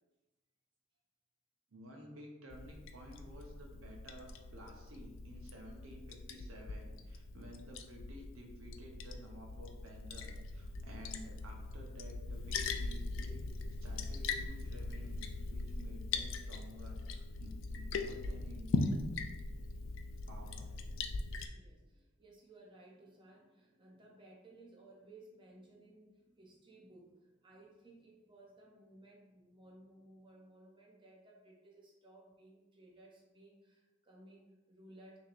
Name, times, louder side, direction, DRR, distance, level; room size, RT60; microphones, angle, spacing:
voice 1, 1.7-13.4 13.7-18.9 19.3-19.4 20.3-21.1, equal, 75° right, 0 dB, 0.9 m, -53 dB
Liquid, 2.5-21.5, left 3 dB, 65° left, 0.3 m, -41 dB
voice 2, 21.1-35.2, right 1 dB, 25° right, -2 dB, 0.5 m, -59 dB
5.7 x 2.9 x 2.5 m, 1.1 s
head